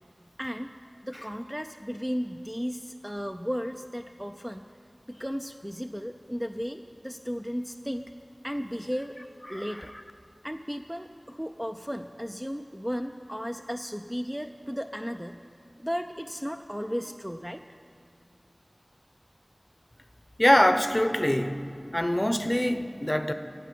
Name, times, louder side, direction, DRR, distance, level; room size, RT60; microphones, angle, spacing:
voice 1, 0.4-0.7 1.0-4.6 5.1-8.1 8.4-9.9 10.4-15.4 15.8-17.6, equal, 5° right, 6 dB, 0.4 m, -35 dB
voice 2, 9.5-10.0 20.4-21.7 21.9-23.3, left 1 dB, 20° left, 9 dB, 0.8 m, -24 dB
14.5 x 8.4 x 8.7 m, 2.3 s
wide cardioid pair, 45°, 0 cm